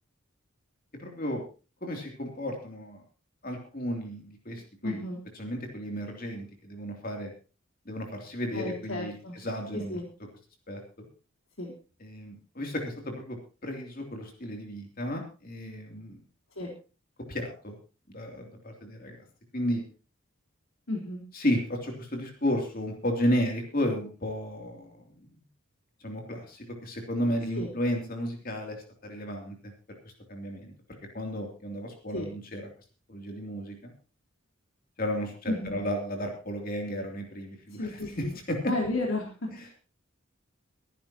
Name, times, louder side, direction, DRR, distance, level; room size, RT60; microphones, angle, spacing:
voice 1, 0.9-1.4 1.8-3.0 3.4-5.0 5.4-7.3 7.8-10.0 10.7-11.1 12.0-16.2 17.2-17.7 18.1-19.2 19.5-19.8 21.3-25.3 26.0-29.7 30.0-30.7 31.1-32.6 33.1-33.9 35.0-38.7, equal, 40° left, 2 dB, 3.0 m, -33 dB
voice 2, 4.8-5.2 8.5-9.4 9.7-10.1 11.6-11.7 16.6-16.7 20.9-21.2 27.5-27.7 32.1-32.3 35.5-35.8 37.7-38.4 38.7-39.5, left 2 dB, 75° left, -1 dB, 3.6 m, -32 dB
24.0 x 11.0 x 2.9 m, 0.34 s
head